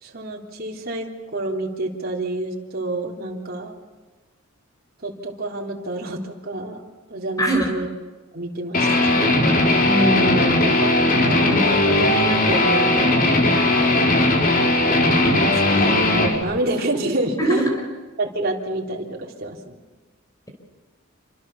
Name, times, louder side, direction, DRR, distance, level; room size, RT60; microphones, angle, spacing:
voice 1, 0.0-3.8 5.0-6.8 7.1-7.9 8.3-9.4 10.8-10.9 11.2-13.2 15.1-17.7 18.2-19.8, right 2 dB, 50° right, -1 dB, 3.6 m, -28 dB
voice 2, 7.4-7.8 9.9-10.7 17.4-17.7, equal, 15° left, 2 dB, 4.7 m, -22 dB
Guitar, 8.7-16.4, left 2 dB, 45° left, 3.9 m, -18 dB
28.0 x 26.0 x 7.1 m, 1.3 s
head